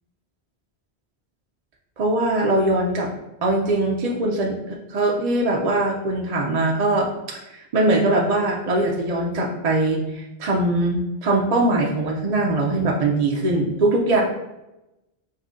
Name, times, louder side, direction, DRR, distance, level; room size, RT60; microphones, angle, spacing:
voice 1, 2.0-3.1 3.4-7.1 7.5-14.2, right 2 dB, 50° right, -2 dB, 0.5 m, -21 dB
5.4 x 2.6 x 2.5 m, 0.95 s
omnidirectional pair, 1.1 m